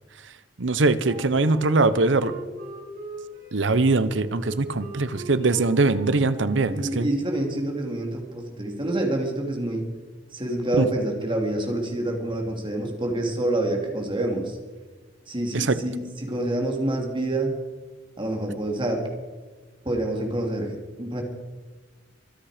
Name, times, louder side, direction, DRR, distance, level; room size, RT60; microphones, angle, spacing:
voice 1, 0.6-2.3 3.5-7.1 10.8-10.9 15.5-15.8, right 3 dB, 75° right, 14 dB, 0.9 m, -22 dB
Wind instrument woodwind instrument, 1.0-6.9, right 1 dB, 50° right, 5.4 m, -40 dB
voice 2, 6.7-9.9 10.3-14.6 15.3-17.5 18.2-19.1 19.8-21.2, right 1 dB, 25° right, 2 dB, 2.9 m, -27 dB
24.0 x 8.8 x 5.1 m, 1.4 s
head